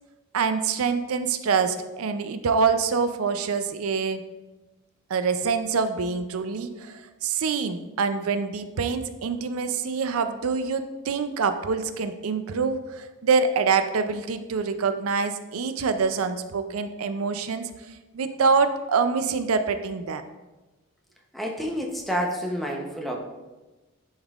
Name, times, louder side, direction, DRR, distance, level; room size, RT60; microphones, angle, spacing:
voice 1, 0.3-4.2 5.1-17.7 18.1-20.2, right 5 dB, 90° right, 9 dB, 0.5 m, -25 dB
voice 2, 21.3-23.2, equal, ahead, -1 dB, 0.8 m, -29 dB
10.5 x 5.4 x 2.4 m, 1.1 s
head